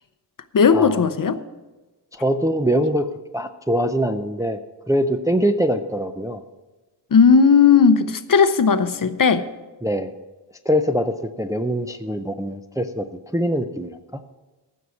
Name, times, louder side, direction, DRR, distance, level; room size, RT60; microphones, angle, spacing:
voice 1, 0.5-1.4 7.1-9.5, left 6 dB, 50° left, 0.7 m, -16 dB
voice 2, 2.1-4.6 4.9-6.4 9.8-10.1 10.7-13.1 13.3-14.2, equal, 10° right, 0.4 m, -23 dB
14.5 x 6.3 x 7.0 m
wide cardioid pair, 155°, 43 cm